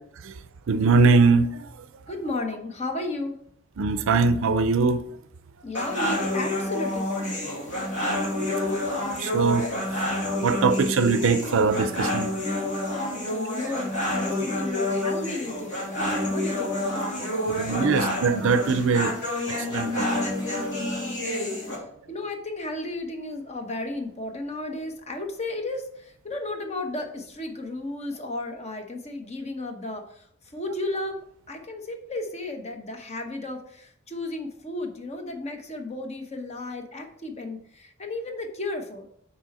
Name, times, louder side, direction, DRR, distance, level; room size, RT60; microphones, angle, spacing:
voice 1, 0.7-1.7 3.8-5.0 8.2-8.3 9.2-9.7 10.4-12.3 17.5-19.1 19.7-20.2, right 4 dB, 65° right, 0.5 m, -22 dB
voice 2, 2.1-3.4 5.6-7.3 13.1-17.9 21.2-21.6 22.1-30.3 30.5-31.2 31.5-39.1, left 2 dB, 30° left, 0.9 m, -34 dB
sound 1, 5.7-21.8, left 1 dB, 60° left, 2.5 m, -28 dB
6.2 x 4.4 x 4.1 m
head